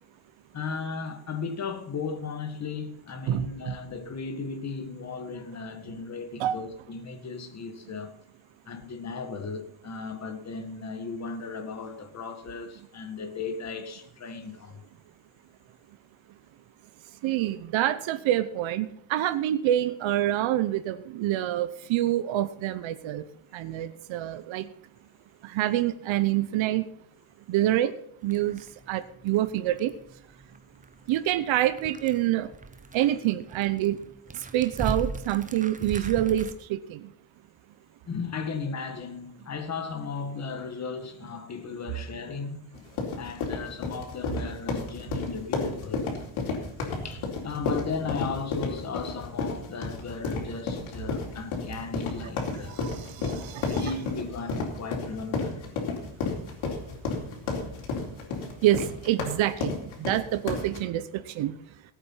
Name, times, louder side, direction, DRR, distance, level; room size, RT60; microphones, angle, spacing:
voice 1, 0.5-8.1 8.7-14.8 38.0-42.8 43.2-46.1 47.0-52.9 53.6-55.6, left 5 dB, 35° left, 1.7 m, -36 dB
voice 2, 3.3-3.7 6.4-6.6 17.2-23.2 23.5-24.7 25.5-26.8 27.5-27.9 28.2-28.6 28.9-29.9 31.1-32.5 32.9-34.0 34.5-37.0 52.8-52.9 53.2-53.7 58.6-59.7 60.0-61.1 61.4-61.5, right 13 dB, 75° right, 0.9 m, -26 dB
sound 1, 28.2-36.5, right 3 dB, 15° right, 0.9 m, -39 dB
sound 2, 42.7-60.8, left 4 dB, 85° left, 4.1 m, -32 dB
17.0 x 8.7 x 5.7 m
cardioid pair, 155°, 47 cm